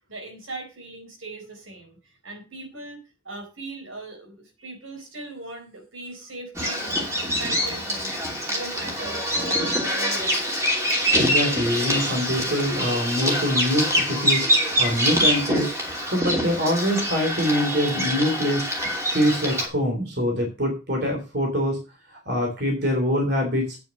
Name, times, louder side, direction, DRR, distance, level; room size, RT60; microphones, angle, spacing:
voice 1, 0.1-3.0 3.2-8.2 8.5-11.0, right 2 dB, 75° right, 4 dB, 4.3 m, -39 dB
Bird vocalization bird call bird song, 6.5-19.7, equal, 15° right, 2.8 m, -25 dB
voice 2, 11.1-14.4 14.8-15.7 16.1-18.6 19.1-21.8 22.1-23.8, equal, 50° right, 2 dB, 3.3 m, -24 dB
9.0 x 7.1 x 6.4 m, 0.30 s
head